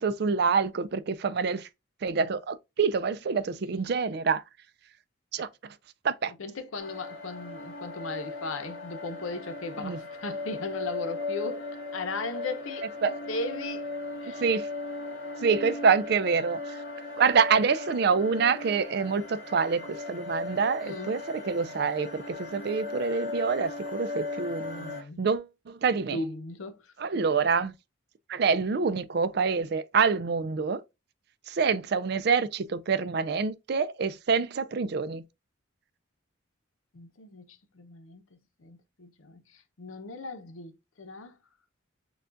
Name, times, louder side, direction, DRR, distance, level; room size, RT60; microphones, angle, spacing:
voice 1, 0.0-1.7 2.0-4.4 5.3-5.5 6.0-6.3 9.8-10.0 13.0-13.1 14.4-14.7 15.4-16.6 17.2-26.2 27.0-27.7 28.3-30.8 31.5-35.2, right 5 dB, 55° right, 0.4 m, -26 dB
voice 2, 6.4-11.7 11.9-13.8 14.2-14.5 15.6-15.7 20.8-21.2 24.7-25.2 26.1-26.9 36.9-41.3, left 3 dB, 90° left, 0.7 m, -37 dB
sound 1, 6.8-25.0, left 3 dB, 50° left, 2.0 m, -37 dB
6.7 x 2.4 x 2.5 m
head